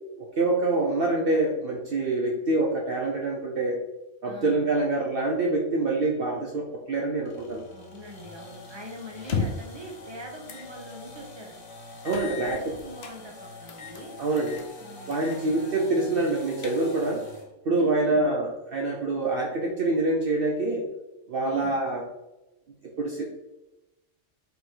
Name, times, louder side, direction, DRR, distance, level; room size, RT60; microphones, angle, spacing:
voice 1, 0.2-3.8 4.2-7.6 12.0-12.8 14.2-14.6 15.1-17.2 17.6-20.9 21.3-22.0 22.8-23.3, right 2 dB, 55° right, 0 dB, 0.9 m, -26 dB
voice 2, 4.2-4.8 7.7-14.1 14.8-15.8 17.8-18.2 21.4-21.7, right 1 dB, 25° right, 0 dB, 1.1 m, -42 dB
sound 1, 7.3-17.5, left 2 dB, 75° left, 1.5 m, -45 dB
sound 2, 9.2-9.8 10.5-10.7 11.1-11.2 12.1-13.2 13.7-14.0 14.4-14.7 15.1-15.4 15.7-15.8 16.3-17.1, left 5 dB, 60° left, 0.9 m, -34 dB
5.3 x 4.7 x 3.8 m, 0.97 s
omnidirectional pair, 1.3 m